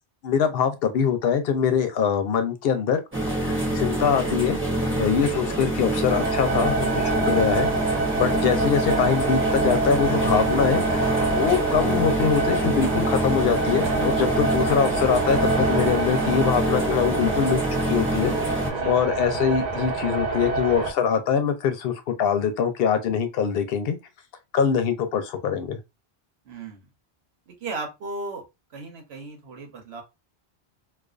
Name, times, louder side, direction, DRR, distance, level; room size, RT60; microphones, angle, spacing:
voice 1, 0.2-3.0 3.3-4.6 5.0-7.7 8.2-18.3 18.8-24.0 24.5-25.8, left 7 dB, 70° left, 0.8 m, -23 dB
sound 1, 3.1-18.7, right 1 dB, 15° right, 0.7 m, -26 dB
sound 2, 6.1-20.9, right 3 dB, 50° right, 0.6 m, -26 dB
voice 2, 26.4-26.9 27.5-28.4 28.7-30.0, right 3 dB, 80° right, 1.0 m, -36 dB
2.3 x 2.3 x 2.3 m
omnidirectional pair, 1.1 m